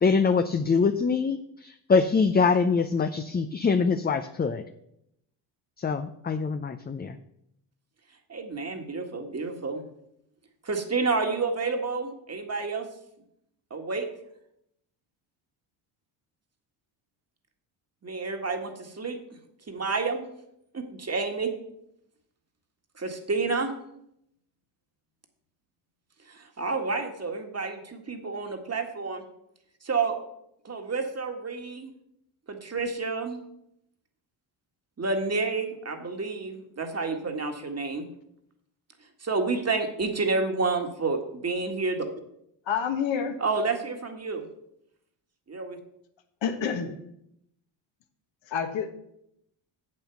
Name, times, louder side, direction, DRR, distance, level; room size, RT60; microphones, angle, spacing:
voice 1, 0.0-4.6 5.8-7.2, left 5 dB, 20° left, 9 dB, 0.5 m, -24 dB
voice 2, 8.3-9.8 10.6-12.9 13.7-14.1 18.0-19.2 19.7-20.3 20.7-21.5 23.0-23.7 26.3-29.2 29.8-30.2 30.6-31.9 32.5-33.4 35.0-38.1 39.2-42.1 43.4-44.4 45.5-45.8, right 4 dB, 30° right, 5 dB, 1.8 m, -29 dB
voice 3, 42.7-43.4 46.4-46.9 48.5-48.9, left 7 dB, 65° left, 6 dB, 1.5 m, -28 dB
8.0 x 7.5 x 5.9 m, 0.77 s
supercardioid pair, 65°, 49 cm